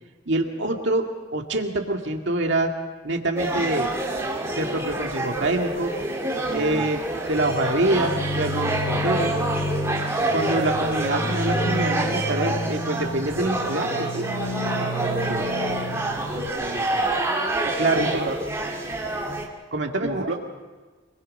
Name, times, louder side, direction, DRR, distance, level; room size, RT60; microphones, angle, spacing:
voice 1, 0.3-1.1 1.3-2.7 3.0-3.9 4.5-5.9 6.5-7.0 7.3-9.3 10.3-14.3 17.8-18.2 19.7-20.3, right 2 dB, 60° right, 2 dB, 2.1 m, -25 dB
sound 1, 3.4-19.5, right 2 dB, 15° right, 2.1 m, -27 dB
voice 2, 6.5-6.9 15.3-15.5 16.3-17.0 18.0-18.4 20.0-20.3, right 2 dB, 80° right, 0 dB, 1.5 m, -33 dB
sound 2, 7.4-16.5, left 1 dB, 75° left, 3.6 m, -30 dB
26.5 x 20.5 x 5.5 m, 1.3 s
head